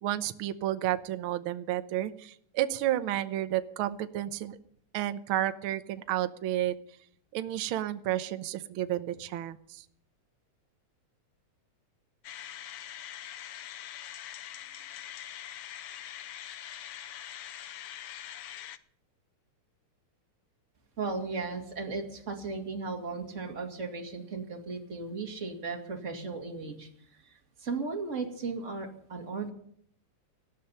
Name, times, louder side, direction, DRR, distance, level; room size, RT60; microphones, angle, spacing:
voice 1, 0.0-4.6 4.9-6.7 7.3-9.8, right 13 dB, 70° right, 10 dB, 1.3 m, -31 dB
sound 1, 12.2-18.8, left 11 dB, 75° left, 1.3 m, -43 dB
voice 2, 21.0-29.5, right 4 dB, 25° right, 2 dB, 2.5 m, -36 dB
18.5 x 13.5 x 5.7 m, 0.65 s
omnidirectional pair, 3.4 m